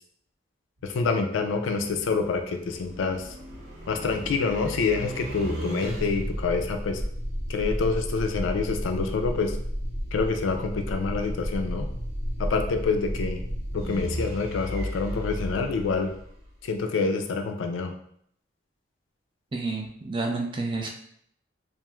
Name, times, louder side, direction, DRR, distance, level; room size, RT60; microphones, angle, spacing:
voice 1, 0.8-3.3 3.9-7.0 7.5-9.6 10.1-11.9 12.4-13.4 13.7-16.1 16.6-17.9, left 4 dB, 80° left, 6 dB, 0.4 m, -27 dB
sound 1, 0.8-16.8, equal, 70° right, 1.0 m, -33 dB
voice 2, 19.5-20.9, right 3 dB, 25° right, 1 dB, 0.3 m, -29 dB
3.0 x 2.5 x 2.3 m, 0.68 s
head